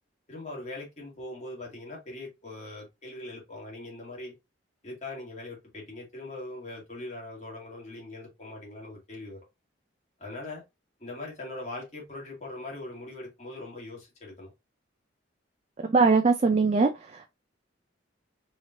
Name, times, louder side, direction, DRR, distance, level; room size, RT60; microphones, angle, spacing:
voice 1, 0.3-4.3 4.8-9.4 10.2-10.6 11.0-14.5, left 2 dB, 35° left, 2.0 m, -41 dB
voice 2, 15.8-17.3, right 4 dB, 35° right, 0.4 m, -22 dB
5.0 x 3.2 x 2.5 m
head